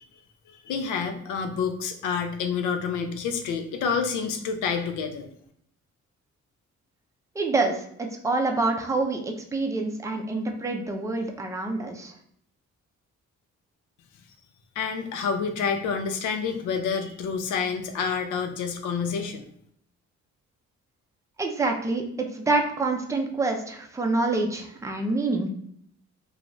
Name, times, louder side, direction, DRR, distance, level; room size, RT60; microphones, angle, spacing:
voice 1, 0.5-5.3 14.8-19.5, left 6 dB, 85° left, 6 dB, 0.5 m, -28 dB
voice 2, 7.3-12.1 21.4-25.5, right 3 dB, 10° right, 3 dB, 0.5 m, -27 dB
2.4 x 2.3 x 3.0 m, 0.66 s
cardioid pair, 75°, 29 cm